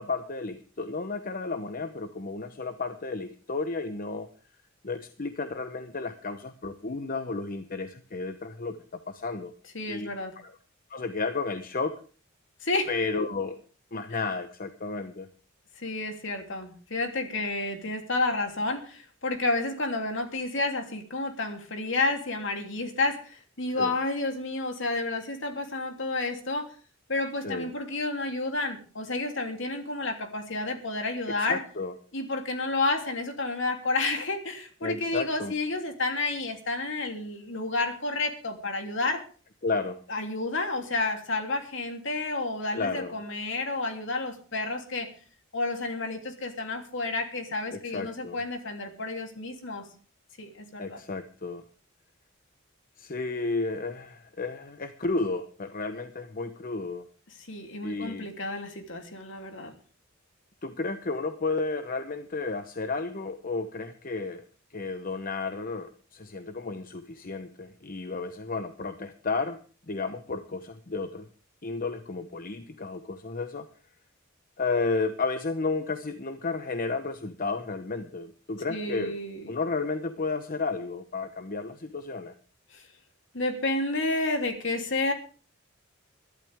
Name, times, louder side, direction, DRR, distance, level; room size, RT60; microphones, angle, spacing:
voice 1, 0.0-4.3 4.8-9.5 9.9-10.1 10.4-10.6 10.9-12.0 12.9-13.6 13.9-15.3 23.8-23.9 27.4-27.7 31.4-31.9 34.8-35.5 39.6-40.0 42.7-43.1 47.7-48.4 50.8-51.6 53.0-57.1 57.8-58.3 60.6-64.4 64.7-69.6 69.9-71.3 71.6-73.7 74.6-79.2 79.5-82.3, left 3 dB, 45° left, 9 dB, 0.9 m, -32 dB
voice 2, 9.7-10.3 12.6-12.9 15.8-26.7 27.1-31.6 32.1-39.2 40.1-45.1 45.5-49.8 50.4-51.0 57.5-59.7 78.7-79.5 82.7-82.8 83.3-85.1, left 2 dB, 65° left, 4 dB, 3.1 m, -30 dB
23.0 x 12.0 x 3.6 m, 0.39 s
head